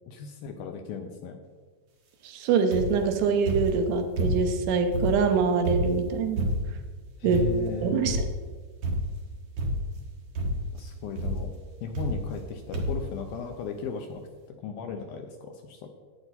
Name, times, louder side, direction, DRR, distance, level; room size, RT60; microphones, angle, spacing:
voice 1, 0.1-1.4 7.2-8.2 10.7-11.5 11.8-14.2 14.6-15.8, left 5 dB, 75° left, 5 dB, 2.3 m, -36 dB
voice 2, 2.2-6.5 7.2-7.4 7.8-8.2, right 5 dB, 80° right, 5 dB, 3.1 m, -24 dB
sound 1, 2.7-3.1 3.5-4.6 4.9-6.9 7.3-7.7 8.0-8.5 8.8-9.2 9.6-10.1 10.3-10.8 11.2-11.5 11.9-12.5 12.7-13.1 13.8-13.9 14.1-14.2, equal, 65° right, 1.4 m, -29 dB
11.5 x 9.4 x 4.2 m, 1.4 s
omnidirectional pair, 4.8 m